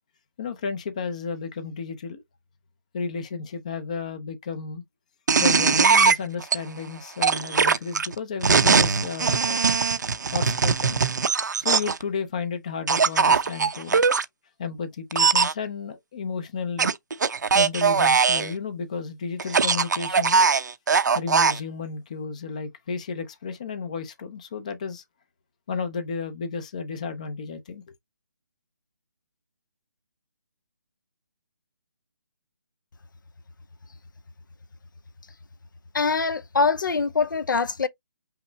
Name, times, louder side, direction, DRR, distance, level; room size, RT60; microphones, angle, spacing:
voice 1, 0.4-2.2 2.9-4.8 5.4-9.6 10.2-11.0 11.6-14.0 14.6-17.0 17.5-20.4 21.1-25.0 25.7-27.8, left 5 dB, 20° left, 0.5 m, -32 dB
sound 1, 5.3-6.6 7.2-12.0 12.9-14.2 15.1-15.5 16.8-18.5 19.4-21.6, right 5 dB, 55° right, 0.6 m, -20 dB
voice 2, 35.9-37.9, left 4 dB, 60° left, 0.6 m, -23 dB
5.7 x 2.0 x 3.9 m
hypercardioid pair, 175°, 12 cm